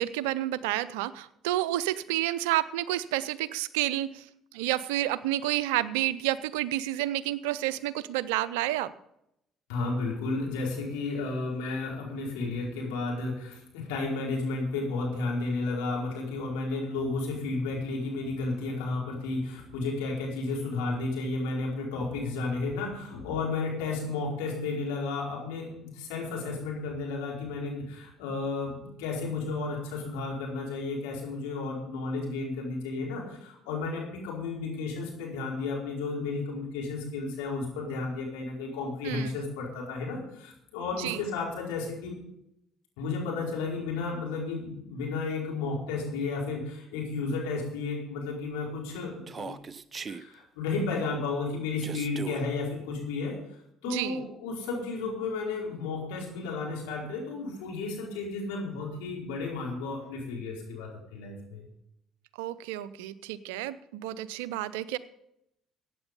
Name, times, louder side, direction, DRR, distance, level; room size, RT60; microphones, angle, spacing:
voice 1, 0.0-4.3 4.5-8.9 39.0-39.3 41.0-41.2 53.9-54.2 62.4-65.0, right 15 dB, 80° right, 16 dB, 0.6 m, -30 dB
voice 2, 9.7-42.2 43.0-49.7 50.1-53.3 53.8-61.6, left 3 dB, 80° left, -2 dB, 4.8 m, -33 dB
Human voice, 49.3-50.2 51.8-52.4, right 4 dB, 35° right, 0.8 m, -38 dB
15.0 x 9.2 x 5.4 m, 0.78 s
hypercardioid pair, 55°, 0 cm